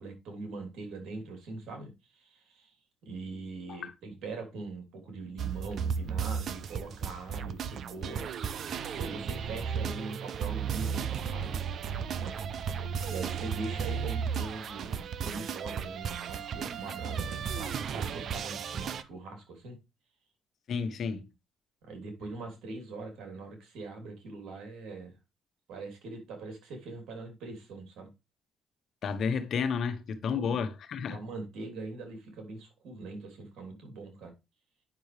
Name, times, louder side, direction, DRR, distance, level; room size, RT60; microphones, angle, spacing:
voice 1, 0.0-2.8 3.0-8.3 8.9-11.6 12.2-12.4 13.1-19.8 21.8-25.1 25.7-28.1 30.2-30.6 31.1-34.3, right 3 dB, 80° right, 3.3 m, -42 dB
sound 1, 5.4-19.0, right 7 dB, 65° right, 0.6 m, -34 dB
voice 2, 20.7-21.3 29.0-31.2, left 6 dB, 65° left, 1.1 m, -31 dB
9.4 x 6.2 x 3.3 m
cardioid pair, 90°, 0 cm